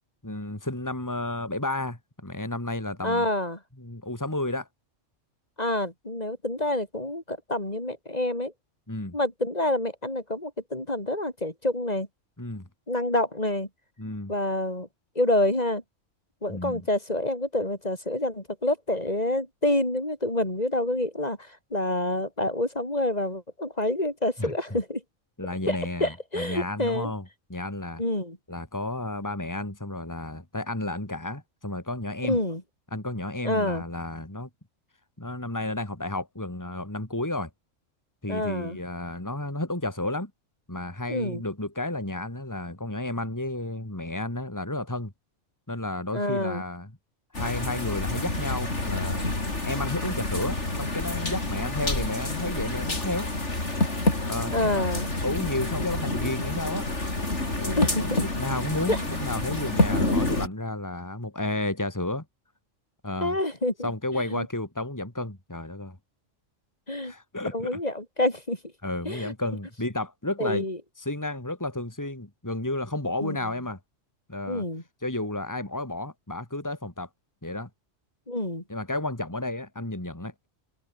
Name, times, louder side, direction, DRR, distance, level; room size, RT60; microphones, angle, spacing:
voice 1, 0.2-3.3 3.8-4.7 8.9-9.2 12.4-12.7 14.0-14.3 16.5-16.9 24.4-24.5 25.4-27.2 27.5-28.0 28.5-32.4 32.9-34.5 35.2-37.5 38.2-40.3 40.7-45.1 45.7-46.9 47.3-49.3 49.6-53.3 54.3-54.9 55.2-56.9 57.6-62.2 63.0-63.4 63.8-66.0 67.0-67.8 68.8-70.7 71.0-73.8 74.3-74.6 75.0-77.1 77.4-77.7 78.7-80.3, left 2 dB, 15° left, 3.2 m, -32 dB
voice 2, 3.0-3.6 5.6-8.5 9.1-12.1 12.9-13.7 14.3-14.9 15.1-15.8 16.4-25.0 25.7-27.1 28.0-28.4 32.2-32.6 33.4-33.8 38.3-38.8 41.1-41.4 46.1-46.6 54.5-55.1 57.8-58.2 58.9-59.0 63.2-64.5 66.9-67.1 67.5-68.6 69.0-69.3 70.4-70.8 73.2-73.4 74.5-74.8 78.3-78.6, left 1 dB, 30° left, 4.9 m, -27 dB
sound 1, 47.3-60.5, left 2 dB, 65° left, 5.4 m, -28 dB
omnidirectional pair, 1.3 m